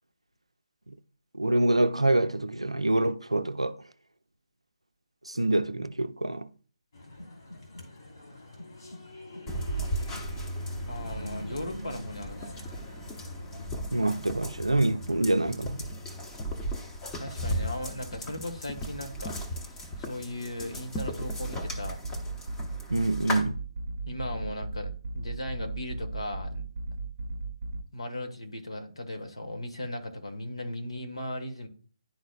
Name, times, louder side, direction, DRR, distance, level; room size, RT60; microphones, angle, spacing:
voice 1, 1.3-3.8 5.3-6.5 13.9-15.9 22.9-23.6, right 1 dB, 90° right, 0.4 m, -26 dB
sound 1, 6.9-13.7, left 1 dB, 55° left, 2.5 m, -44 dB
sound 2, 9.5-23.4, equal, 15° left, 0.8 m, -36 dB
voice 2, 10.9-12.6 17.2-19.3 19.7-22.0 24.1-26.6 27.9-31.7, left 1 dB, 75° left, 1.2 m, -37 dB
sound 3, 21.0-27.8, right 3 dB, 50° right, 0.7 m, -36 dB
11.0 x 4.0 x 2.3 m
figure-of-eight pair, 140°, 3 cm